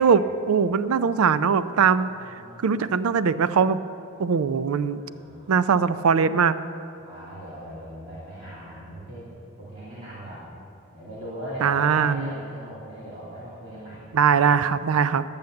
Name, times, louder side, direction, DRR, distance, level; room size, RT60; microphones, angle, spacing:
voice 1, 0.0-2.1 2.6-3.8 4.2-5.0 5.5-6.5 11.6-12.3 14.1-15.2, right 6 dB, 85° right, 14 dB, 0.4 m, -21 dB
voice 2, 2.1-2.8 5.0-5.7 7.0-9.3 9.6-10.4 10.9-14.1, equal, 35° right, -8 dB, 2.3 m, -39 dB
10.5 x 7.1 x 7.6 m, 2.7 s
head